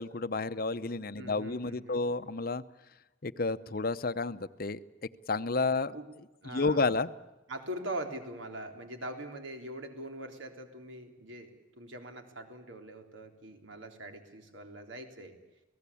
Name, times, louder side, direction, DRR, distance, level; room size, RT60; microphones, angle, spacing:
voice 1, 0.0-2.6 3.2-4.8 5.3-6.0 6.4-7.1, left 3 dB, 50° left, 14 dB, 0.8 m, -31 dB
voice 2, 1.2-2.0 5.9-6.1 6.4-6.9 7.5-15.4, right 1 dB, 80° right, 5 dB, 3.7 m, -42 dB
29.0 x 18.5 x 8.5 m, 1.0 s
head